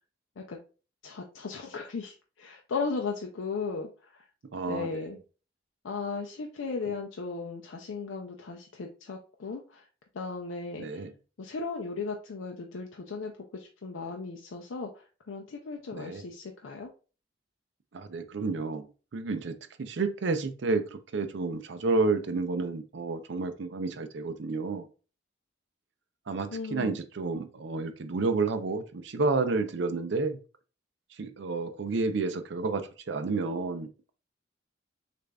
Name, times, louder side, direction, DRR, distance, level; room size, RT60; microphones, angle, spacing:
voice 1, 1.0-3.9 4.1-4.2 4.7-5.2 5.8-9.8 10.1-11.0 11.4-16.9 26.5-27.0, left 4 dB, 90° left, 0.5 m, -36 dB
voice 2, 4.5-5.1 10.8-11.1 16.0-16.2 17.9-18.9 19.1-24.9 26.3-30.4 31.2-32.8 33.1-33.9, right 3 dB, 70° right, 0.5 m, -30 dB
6.5 x 2.5 x 2.2 m
head